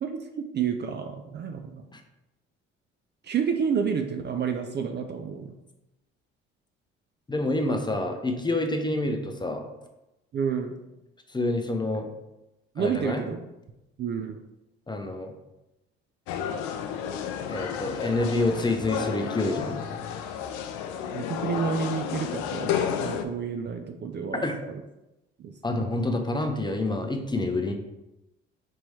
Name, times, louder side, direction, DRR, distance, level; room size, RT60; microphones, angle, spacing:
voice 1, 0.0-1.8 3.2-5.5 10.3-10.8 12.8-13.4 14.0-14.4 21.0-24.5 25.4-25.9, right 6 dB, 35° right, 6 dB, 0.4 m, -30 dB
voice 2, 7.3-9.7 11.3-12.1 12.8-13.2 14.9-15.3 17.5-19.8 24.3-24.6 25.6-27.7, left 2 dB, 15° left, 4 dB, 0.6 m, -27 dB
sound 1, 16.3-23.2, left 8 dB, 75° left, 0.5 m, -31 dB
4.6 x 3.0 x 2.7 m, 0.95 s
hypercardioid pair, 60°, 29 cm